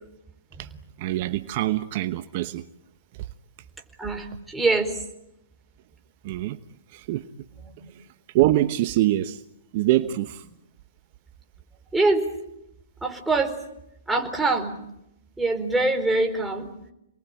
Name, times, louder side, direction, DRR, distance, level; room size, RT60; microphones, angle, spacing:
voice 1, 1.0-2.7 3.1-3.3 6.2-6.6 6.9-7.3 7.9-9.4 9.7-10.5, right 15 dB, 45° right, 1.0 m, -25 dB
voice 2, 4.0-5.0 11.9-12.2 13.0-13.5 14.1-14.8 15.4-16.7, right 2 dB, 5° right, 4.3 m, -23 dB
28.0 x 20.5 x 9.0 m
hypercardioid pair, 130°, 0 cm